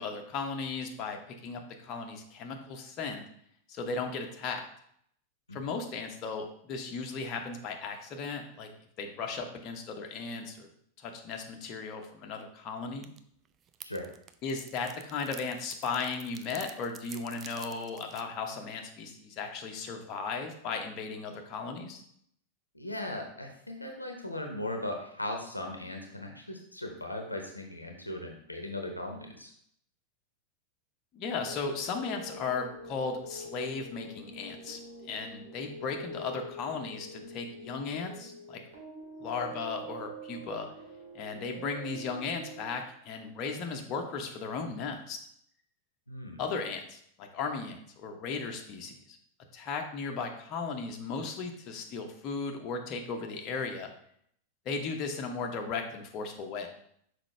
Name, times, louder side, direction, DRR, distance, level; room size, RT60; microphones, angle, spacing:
voice 1, 0.0-3.2 3.7-4.6 5.5-8.7 9.0-10.7 11.0-13.1 14.4-22.0 31.1-38.6 39.2-40.7 41.1-45.2 46.4-49.2 49.5-53.9 54.6-56.7, left 4 dB, 35° left, 3 dB, 1.0 m, -36 dB
sound 1, 13.0-13.2 13.5-18.2, right 8 dB, 30° right, 0.4 m, -48 dB
voice 2, 22.7-29.5 46.1-46.4, left 1 dB, 85° left, 3 dB, 0.9 m, -38 dB
sound 2, 31.4-42.8, right 1 dB, 65° right, 2.0 m, -45 dB
6.3 x 4.6 x 3.2 m, 0.68 s
figure-of-eight pair, 90°, 0 cm